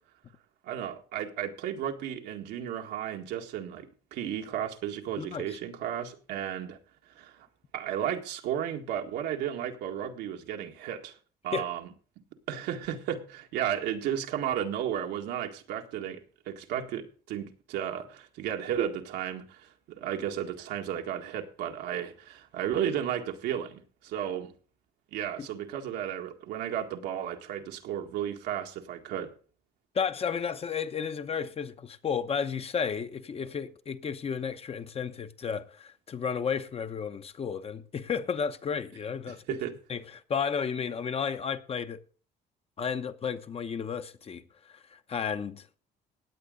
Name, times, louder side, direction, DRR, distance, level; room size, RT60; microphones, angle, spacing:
voice 1, 0.6-6.8 7.1-7.5 7.7-11.1 11.4-11.8 12.5-16.2 16.4-24.5 25.1-29.3 39.3-39.7, right 10 dB, 85° right, 1.8 m, -33 dB
voice 2, 5.2-5.6 11.5-11.7 29.9-39.6 39.9-42.0 42.8-45.7, left 6 dB, 35° left, 1.0 m, -33 dB
17.0 x 9.1 x 3.9 m
cardioid pair, 110°, 17 cm